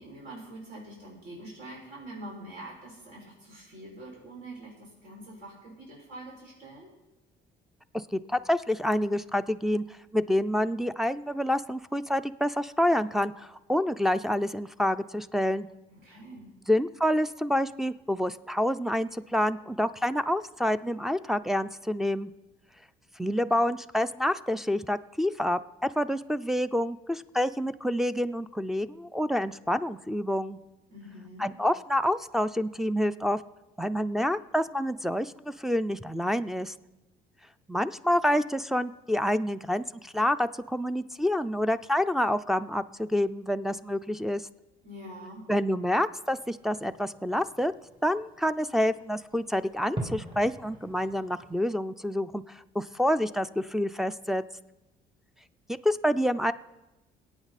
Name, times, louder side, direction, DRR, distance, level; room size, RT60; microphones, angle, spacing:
voice 1, 0.0-6.9 15.9-16.5 30.9-31.5 44.8-45.4, right 1 dB, 70° right, -5 dB, 5.8 m, -45 dB
voice 2, 7.9-15.7 16.7-22.3 23.2-25.6 26.0-30.6 31.4-33.4 33.8-36.7 37.7-44.4 45.5-47.7 48.0-54.4 55.7-56.5, left 1 dB, ahead, 7 dB, 0.4 m, -28 dB
Fireworks, 46.3-51.6, right 2 dB, 30° right, 2.4 m, -43 dB
21.0 x 8.8 x 4.1 m, 1.0 s
cardioid pair, 110°, 17 cm